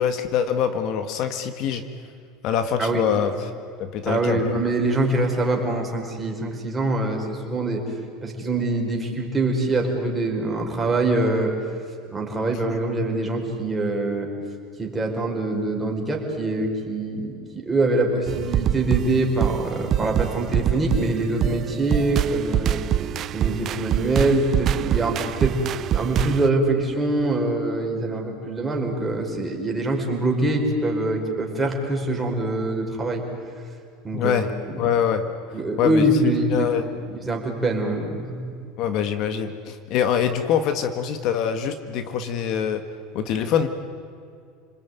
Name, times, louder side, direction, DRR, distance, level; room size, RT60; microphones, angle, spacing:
voice 1, 0.0-1.8 2.4-3.5 3.8-4.5 34.1-34.5 34.8-35.3 35.8-36.9 38.8-42.8 43.1-43.7, left 8 dB, 55° left, 9 dB, 1.7 m, -24 dB
voice 2, 4.0-7.8 8.2-11.5 12.1-14.3 14.8-22.8 23.3-25.6 25.9-33.2 34.0-34.4 34.7-34.8 35.5-36.7 37.1-38.5, right 2 dB, 15° right, 0 dB, 5.2 m, -24 dB
sound 1, 18.3-26.5, right 11 dB, 40° right, 0.6 m, -25 dB
29.0 x 20.5 x 9.4 m, 2.3 s
supercardioid pair, 120°, 0 cm